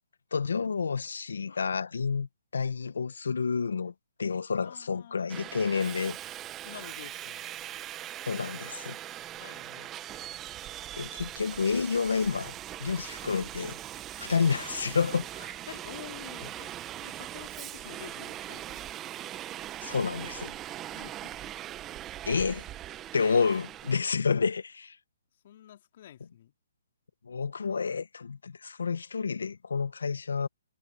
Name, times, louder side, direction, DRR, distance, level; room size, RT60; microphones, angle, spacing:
voice 1, 0.3-3.9 4.2-6.2 8.2-9.0 11.0-12.5 12.8-13.8 14.2-15.6 19.8-20.6 22.2-22.6 23.1-25.0 27.2-30.5, left 5 dB, 80° left, 1.3 m, -29 dB
voice 2, 4.6-5.4 6.6-7.5 9.4-9.9 14.2-14.6 15.7-19.0 20.9-21.5 25.4-26.5, left 11 dB, 45° left, 4.0 m, -49 dB
Subway metro underground, 5.3-24.0, right 12 dB, 20° right, 1.2 m, -41 dB
hypercardioid pair, 150°, 0 cm